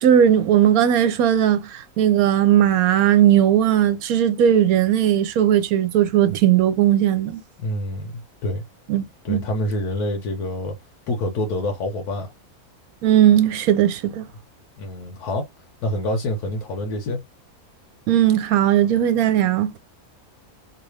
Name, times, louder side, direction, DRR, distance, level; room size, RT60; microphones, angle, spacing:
voice 1, 0.0-7.4 8.9-9.4 13.0-14.2 18.1-19.8, right 10 dB, 75° right, 1.1 m, -18 dB
voice 2, 7.6-8.6 9.2-10.8 11.1-12.3 14.8-15.5 15.8-17.2, left 1 dB, 90° left, 1.4 m, -26 dB
3.2 x 2.5 x 3.2 m
omnidirectional pair, 1.6 m